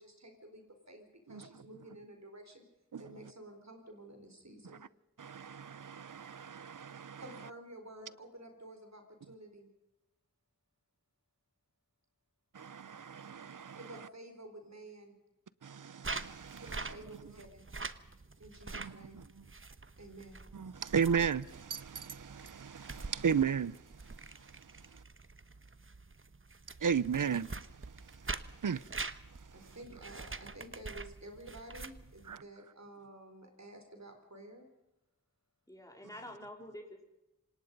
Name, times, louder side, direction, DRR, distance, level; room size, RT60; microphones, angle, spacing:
voice 1, 0.0-2.6 3.0-4.8 7.2-9.7 13.8-15.2 16.6-17.7 18.4-19.3 20.0-20.4 29.5-34.7, right 1 dB, 55° right, 4.2 m, -51 dB
voice 2, 5.2-7.2 12.5-13.8 15.6-16.6 18.7-19.0 20.5-23.8 26.8-27.5 28.6-28.9 32.3-32.4, right 7 dB, 75° right, 0.6 m, -34 dB
sound 1, 16.0-32.4, right 3 dB, 40° right, 1.0 m, -45 dB
voice 3, 35.7-37.0, left 1 dB, 10° left, 3.5 m, -48 dB
26.5 x 18.5 x 5.4 m
wide cardioid pair, 40°, 32 cm